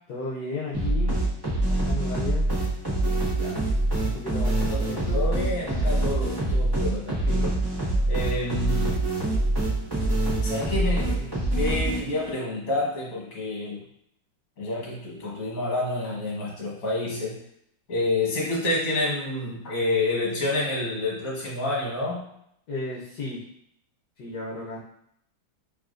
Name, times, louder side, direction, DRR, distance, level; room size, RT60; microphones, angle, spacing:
voice 1, 0.1-1.2 1.7-2.5 3.0-3.7 4.0-5.3 22.7-23.4 24.2-24.8, left 3 dB, 65° left, -5 dB, 1.2 m, -34 dB
sound 1, 0.7-12.3, right 1 dB, 15° right, 1.3 m, -25 dB
voice 2, 4.7-7.6 8.1-9.0 10.4-13.8 14.6-17.4 17.9-22.2, left 2 dB, 45° left, -4 dB, 1.6 m, -28 dB
4.6 x 3.3 x 2.5 m, 0.71 s
omnidirectional pair, 2.2 m